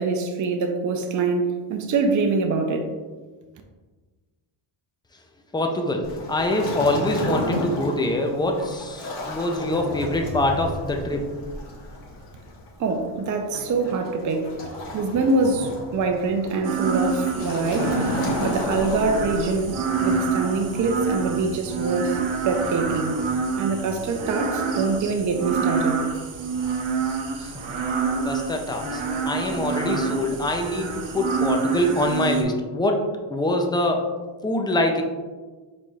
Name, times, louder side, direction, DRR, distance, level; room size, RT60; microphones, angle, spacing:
voice 1, 0.0-2.9 12.8-14.6 14.9-18.0 18.4-23.2 23.6-26.0, right 3 dB, 40° right, 4 dB, 0.5 m, -24 dB
voice 2, 5.5-11.2 27.4-27.6 28.2-33.0 33.3-34.0 34.4-35.0, left 1 dB, 10° left, 3 dB, 0.3 m, -24 dB
Waves surf, 6.0-19.7, left 1 dB, 65° left, 1.2 m, -32 dB
sound 1, 16.6-32.4, right 4 dB, 80° right, 0.8 m, -27 dB
4.7 x 4.1 x 2.3 m, 1.3 s
cardioid pair, 125°, 46 cm